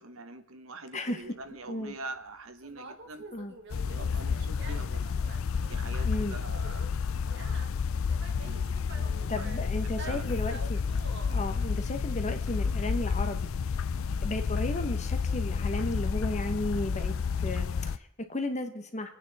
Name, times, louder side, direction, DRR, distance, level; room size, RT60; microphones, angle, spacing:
voice 1, 0.0-3.2 3.8-5.1 5.7-7.8 8.4-9.3 9.8-10.3, right 2 dB, 80° right, 8 dB, 1.2 m, -45 dB
voice 2, 0.9-1.2 1.7-1.9 3.3-3.5 6.0-6.4 9.3-10.8 11.3-13.5 14.2-19.1, left 1 dB, 35° left, 6 dB, 1.1 m, -34 dB
Conversation, 1.2-13.1, right 2 dB, 55° right, 1.8 m, -49 dB
sound 1, 3.7-18.0, left 5 dB, 75° left, 0.4 m, -30 dB
26.5 x 9.3 x 4.2 m, 0.71 s
head